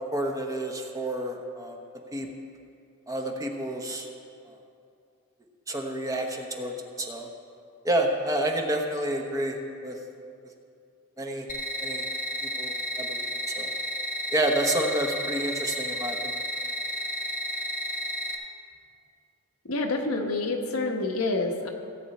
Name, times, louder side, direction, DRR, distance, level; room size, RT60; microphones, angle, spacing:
voice 1, 0.1-1.8 2.1-2.3 3.1-4.1 4.5-4.6 5.7-7.3 7.8-9.6 9.8-10.0 11.2-11.5 11.8-12.0 12.4-13.3 13.6-13.7 14.3-16.4, right 1 dB, 15° right, 2 dB, 1.0 m, -29 dB
sound 1, 11.5-18.3, equal, 40° left, 1.2 m, -32 dB
voice 2, 19.7-21.7, left 2 dB, 70° left, 2 dB, 1.2 m, -27 dB
17.0 x 8.3 x 4.2 m, 2.4 s
head